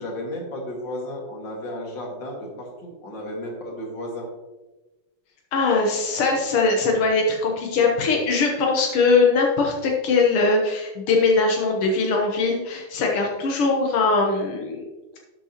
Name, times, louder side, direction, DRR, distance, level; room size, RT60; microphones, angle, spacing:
voice 1, 0.0-4.3, left 1 dB, 55° left, -1 dB, 2.7 m, -33 dB
voice 2, 5.5-14.9, left 3 dB, 85° left, 0 dB, 2.1 m, -21 dB
11.5 x 7.6 x 3.0 m, 1.1 s
omnidirectional pair, 2.4 m